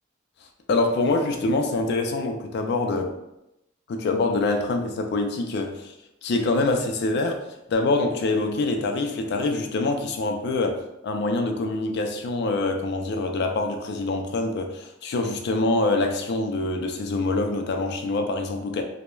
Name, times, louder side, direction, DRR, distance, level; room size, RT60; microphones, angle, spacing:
voice 1, 0.7-3.1 3.9-5.9 6.2-7.4 7.7-18.8, left 2 dB, 55° left, 5 dB, 0.3 m, -25 dB
3.0 x 2.0 x 2.2 m, 0.88 s
head